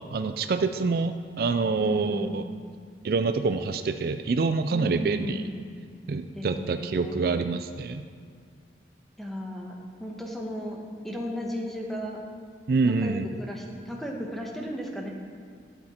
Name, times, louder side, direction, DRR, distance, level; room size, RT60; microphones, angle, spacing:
voice 1, 0.1-2.4 3.0-5.4 6.1-8.0 12.7-13.3, right 4 dB, 55° right, 9 dB, 0.4 m, -26 dB
voice 2, 1.8-2.5 4.7-5.6 6.3-7.3 9.2-12.2 12.8-15.1, equal, ahead, -1 dB, 1.1 m, -35 dB
12.0 x 8.8 x 4.4 m, 2.1 s
head